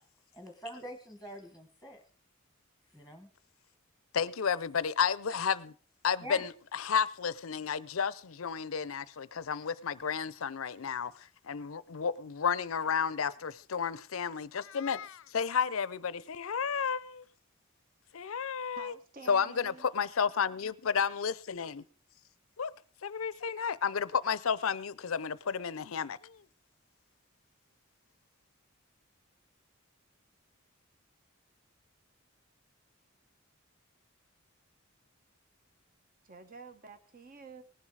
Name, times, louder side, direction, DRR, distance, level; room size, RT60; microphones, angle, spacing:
voice 1, 0.3-2.0 2.9-3.3 6.2-6.4, left 1 dB, ahead, 1.4 m, -44 dB
voice 2, 4.1-5.7 6.0-17.2 18.1-18.9 19.3-21.8 22.6-22.7 23.0-26.4, left 6 dB, 85° left, 0.6 m, -32 dB
voice 3, 18.7-19.9 25.9-26.0 36.2-37.6, right 4 dB, 45° right, 1.3 m, -49 dB
18.5 x 7.4 x 4.8 m
head